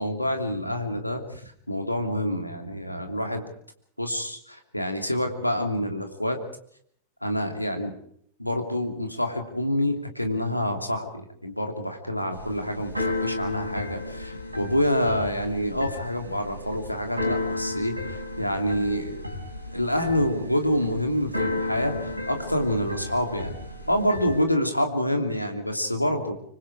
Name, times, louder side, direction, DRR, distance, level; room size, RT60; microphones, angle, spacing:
voice 1, 0.0-1.4 1.7-3.5 4.0-6.4 7.2-7.9 8.4-11.1 11.4-19.2 19.7-23.5 23.9-26.4, left 1 dB, 90° left, 5 dB, 2.9 m, -27 dB
Keyboard (musical), 12.3-24.4, left 2 dB, 85° right, 4.4 m, -33 dB
25.5 x 24.0 x 4.8 m, 0.68 s
figure-of-eight pair, 90°, 0 cm